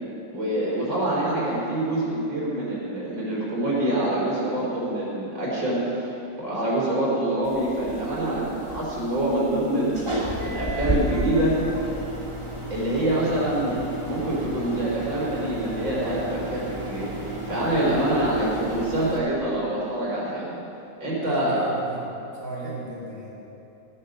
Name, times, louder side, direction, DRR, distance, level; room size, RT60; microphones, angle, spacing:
voice 1, 0.3-6.1 6.4-10.1 10.5-11.6 12.7-20.5 21.0-21.6, right 1 dB, 90° right, -7 dB, 5.1 m, -25 dB
sound 1, 7.4-19.2, right 1 dB, 15° right, 1.8 m, -33 dB
voice 2, 21.2-22.1 22.4-23.3, right 1 dB, 40° right, -8 dB, 3.6 m, -34 dB
14.0 x 9.9 x 6.7 m, 2.9 s
omnidirectional pair, 2.1 m